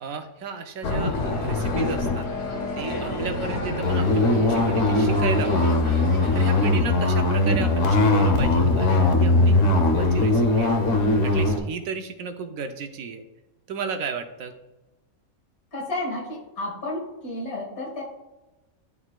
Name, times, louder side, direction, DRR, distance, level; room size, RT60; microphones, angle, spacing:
voice 1, 0.0-2.3 2.7-6.0 6.3-10.7 11.2-13.3 13.7-14.6, right 5 dB, 75° right, 7 dB, 1.1 m, -34 dB
sound 1, 0.8-11.6, left 2 dB, 65° left, 1.1 m, -21 dB
sound 2, 1.2-6.7, equal, 25° left, 0.8 m, -33 dB
voice 2, 15.7-18.0, left 1 dB, 80° left, -2 dB, 2.3 m, -31 dB
11.0 x 4.0 x 2.3 m, 1.1 s
omnidirectional pair, 1.5 m